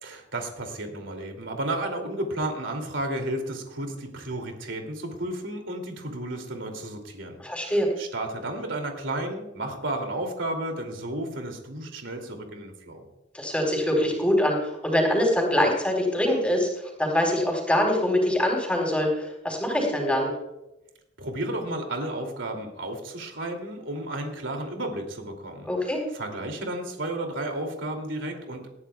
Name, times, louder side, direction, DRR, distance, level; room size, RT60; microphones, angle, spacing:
voice 1, 0.0-13.1 21.2-28.7, right 1 dB, 90° right, 3 dB, 2.7 m, -33 dB
voice 2, 7.4-7.9 13.3-20.3 25.7-26.0, left 1 dB, 5° left, 0 dB, 4.4 m, -24 dB
20.0 x 14.0 x 2.3 m, 0.95 s
head